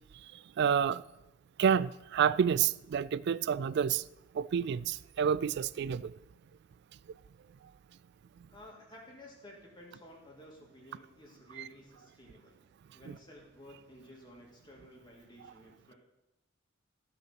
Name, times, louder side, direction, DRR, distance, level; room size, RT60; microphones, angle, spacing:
voice 1, 0.6-1.0 1.6-4.0 4.4-6.1, right 7 dB, 55° right, 0.3 m, -29 dB
voice 2, 8.5-12.6 12.9-15.9, left 1 dB, 20° left, 2.6 m, -54 dB
15.0 x 5.8 x 5.9 m
head